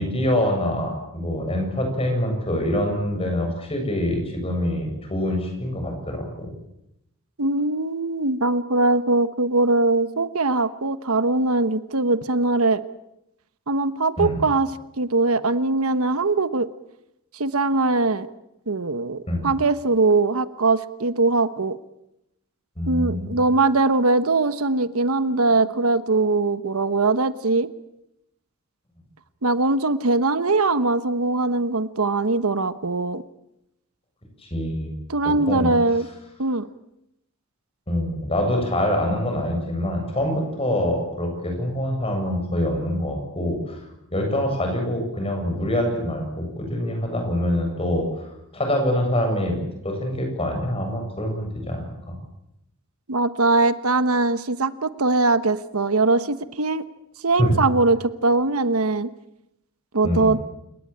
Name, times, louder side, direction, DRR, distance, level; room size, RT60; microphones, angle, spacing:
voice 1, 0.0-6.5 14.2-14.4 19.3-19.5 22.8-23.4 34.5-34.9 35.2-35.8 37.9-43.8 44.1-48.3 48.5-49.6 49.8-52.2 57.4-57.6 60.0-60.3, left 1 dB, 25° left, 3 dB, 7.7 m, -25 dB
voice 2, 7.4-12.8 13.7-14.7 15.0-16.7 17.3-18.3 18.7-21.8 22.9-27.7 29.4-33.2 35.1-36.1 36.4-36.7 53.1-56.8 57.2-59.1 59.9-60.4, right 3 dB, 85° right, 13 dB, 1.2 m, -21 dB
29.5 x 18.5 x 8.8 m, 0.84 s
head